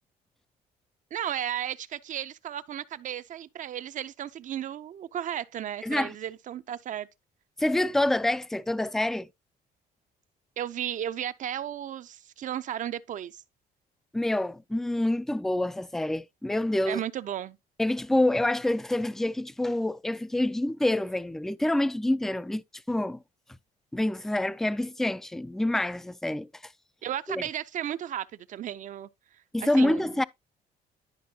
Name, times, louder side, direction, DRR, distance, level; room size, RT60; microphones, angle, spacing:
voice 1, 1.1-7.1 10.6-13.4 16.9-17.6 27.0-29.1 29.6-30.0, right 10 dB, 50° right, 0.6 m, -34 dB
voice 2, 5.8-6.1 7.6-9.3 14.1-17.0 17.8-22.6 22.9-23.2 23.9-26.7 27.3-27.4 29.5-30.2, left 1 dB, ahead, 0.3 m, -27 dB
11.5 x 5.2 x 2.8 m
cardioid pair, 110°, 17 cm